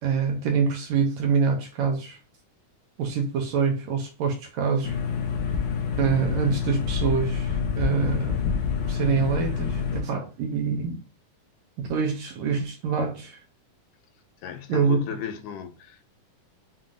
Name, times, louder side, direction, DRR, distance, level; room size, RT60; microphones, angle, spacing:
voice 1, 0.0-2.2 3.0-5.0 6.0-8.4 8.9-11.0 11.8-13.4 14.7-15.0, right 5 dB, 70° right, 1.8 m, -25 dB
sound 1, 4.8-10.0, left 6 dB, 70° left, 2.0 m, -27 dB
voice 2, 14.4-16.1, left 8 dB, 85° left, 2.2 m, -36 dB
7.3 x 2.8 x 2.5 m
omnidirectional pair, 3.8 m